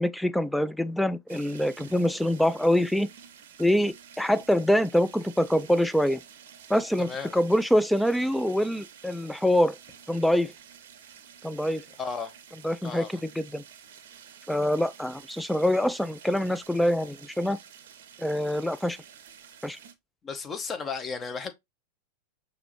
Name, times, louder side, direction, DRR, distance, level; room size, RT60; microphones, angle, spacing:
voice 1, 0.0-3.1 3.6-6.2 6.7-9.8 10.1-10.5 11.4-11.8 12.6-13.6 14.5-17.6 18.2-19.0 19.6-19.8, equal, ahead, 0.3 m, -25 dB
sound 1, 1.3-19.9, right 8 dB, 55° right, 0.6 m, -50 dB
voice 2, 7.0-7.3 12.0-12.3 12.8-13.2 20.2-21.5, left 5 dB, 20° left, 0.8 m, -34 dB
5.8 x 2.6 x 2.9 m
figure-of-eight pair, 90°, 0 cm